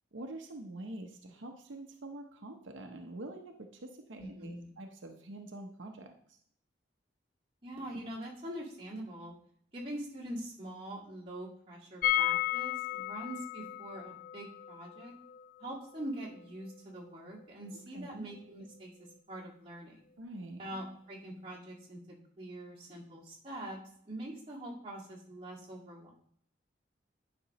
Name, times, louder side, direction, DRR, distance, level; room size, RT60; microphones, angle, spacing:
voice 1, 0.1-6.4 17.9-18.3 20.2-20.6, right 1 dB, 85° right, 3 dB, 0.8 m, -45 dB
voice 2, 4.2-4.7 7.6-9.3 9.7-15.1 15.6-18.9 19.3-20.0 20.6-23.8 24.0-26.1, right 1 dB, 30° right, -5 dB, 1.9 m, -43 dB
sound 1, 12.0-17.8 18.0-18.1 18.4-18.5, left 16 dB, 45° left, 0.3 m, -35 dB
9.8 x 5.3 x 3.0 m, 0.66 s
head